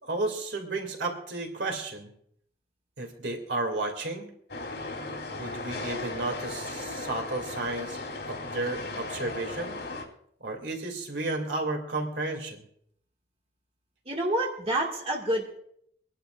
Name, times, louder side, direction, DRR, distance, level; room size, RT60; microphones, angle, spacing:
voice 1, 0.0-2.1 3.0-4.3 5.3-9.8 10.4-12.7, right 2 dB, 85° right, 3 dB, 2.6 m, -33 dB
sound 1, 4.5-10.0, left 2 dB, 75° left, 3.5 m, -36 dB
voice 2, 14.1-15.6, right 1 dB, 35° right, -1 dB, 2.0 m, -28 dB
26.0 x 11.5 x 2.5 m, 0.70 s
head